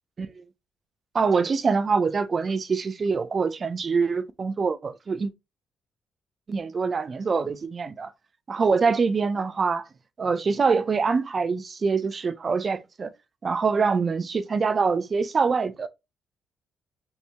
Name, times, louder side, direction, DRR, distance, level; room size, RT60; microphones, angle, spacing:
voice 1, 1.1-5.3 6.5-8.1 8.5-9.9 10.2-13.1 13.4-15.9, right 5 dB, 40° right, 0.5 m, -24 dB
4.1 x 2.7 x 3.5 m
cardioid pair, 90°, 0 cm